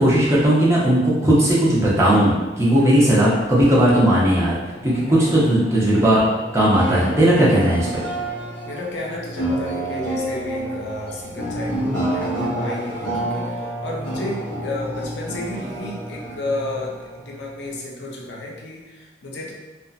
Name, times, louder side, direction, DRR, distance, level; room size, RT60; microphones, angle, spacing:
voice 1, 0.0-4.5 4.8-6.2 6.5-7.9, right 1 dB, 15° right, -7 dB, 0.6 m, -17 dB
sound 1, 3.1-17.8, right 1 dB, 10° left, 0.9 m, -29 dB
voice 2, 5.1-5.5 8.6-19.5, left 2 dB, 75° left, -2 dB, 0.5 m, -32 dB
2.6 x 2.2 x 2.4 m, 1.2 s
head